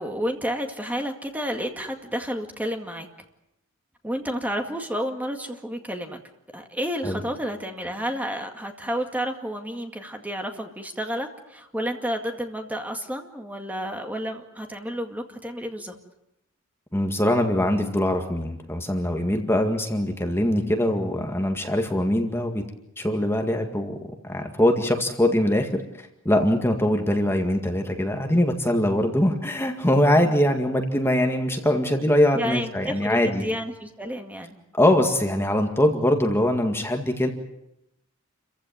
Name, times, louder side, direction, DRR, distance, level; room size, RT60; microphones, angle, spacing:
voice 1, 0.0-3.1 4.0-6.2 6.5-15.9 30.2-30.3 32.3-34.6, equal, 10° right, 4 dB, 2.1 m, -31 dB
voice 2, 16.9-22.6 23.0-24.0 24.2-33.5 34.8-37.3, left 1 dB, 10° left, 4 dB, 2.0 m, -22 dB
29.0 x 15.5 x 9.3 m, 0.85 s
head